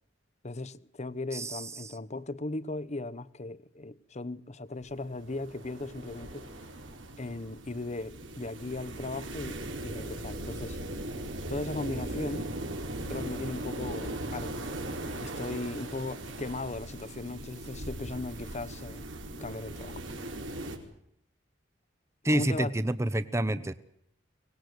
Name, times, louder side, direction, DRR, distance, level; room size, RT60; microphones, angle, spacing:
voice 1, 0.4-6.5 7.2-10.8 11.5-12.5 13.1-14.7 15.2-19.1 19.4-20.0 22.3-22.7, left 2 dB, 35° left, 1.0 m, -37 dB
voice 2, 1.3-1.9 22.2-23.7, right 1 dB, 15° right, 0.9 m, -29 dB
sound 1, 4.8-20.8, right 1 dB, 85° right, 4.5 m, -39 dB
24.5 x 19.0 x 8.0 m
head